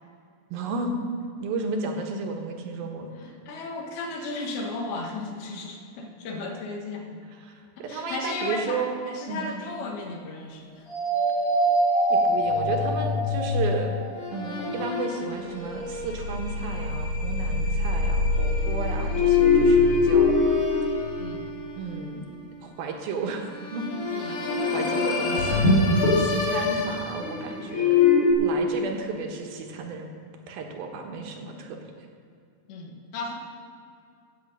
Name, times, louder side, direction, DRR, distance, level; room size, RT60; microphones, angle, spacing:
voice 1, 0.5-0.9 1.4-3.1 7.4-9.0 9.3-9.5 12.1-14.0 14.3-20.4 21.8-22.2 22.6-23.9 24.7-28.0 28.4-30.1 30.5-31.8, right 4 dB, 75° right, 2 dB, 3.0 m, -33 dB
voice 2, 3.2-7.2 7.8-10.9 21.2-21.5 24.1-24.4 32.7-33.3, left 3 dB, 80° left, 2 dB, 3.4 m, -35 dB
sound 1, 10.9-22.0 23.5-28.3, left 3 dB, 40° left, 2.9 m, -23 dB
16.5 x 9.6 x 5.5 m, 2.4 s
omnidirectional pair, 4.5 m